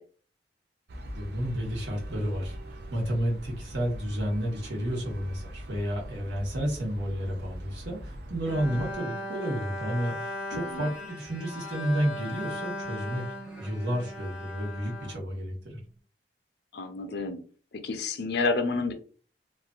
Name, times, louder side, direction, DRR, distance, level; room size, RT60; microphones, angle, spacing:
sound 1, 0.9-8.9, equal, 65° right, 0.5 m, -42 dB
voice 1, 1.1-13.2 13.6-15.8, equal, 80° right, -2 dB, 1.2 m, -31 dB
Bowed string instrument, 8.4-15.8, left 1 dB, 5° right, 0.9 m, -38 dB
voice 2, 16.7-17.4 17.7-18.9, left 3 dB, 65° left, 7 dB, 0.5 m, -29 dB
3.0 x 2.5 x 2.4 m, 0.40 s
head